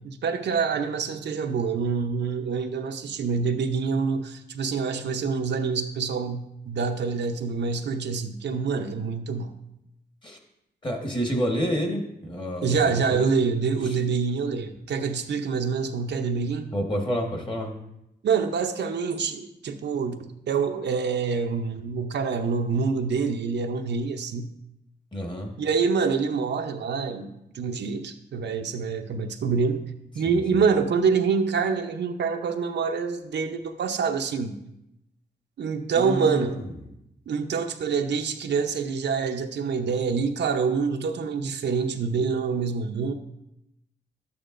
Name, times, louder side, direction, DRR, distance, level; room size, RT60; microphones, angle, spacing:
voice 1, 0.0-9.5 12.6-16.7 18.2-24.5 25.6-29.8 30.1-34.5 35.6-36.6 37.3-43.1, right 5 dB, 90° right, 5 dB, 0.7 m, -26 dB
voice 2, 10.8-13.3 13.8-14.0 16.7-17.8 25.1-25.5 30.2-30.6 36.0-36.7, equal, 25° left, 2 dB, 1.4 m, -29 dB
12.0 x 8.5 x 2.5 m, 0.84 s
wide cardioid pair, 125°, 17 cm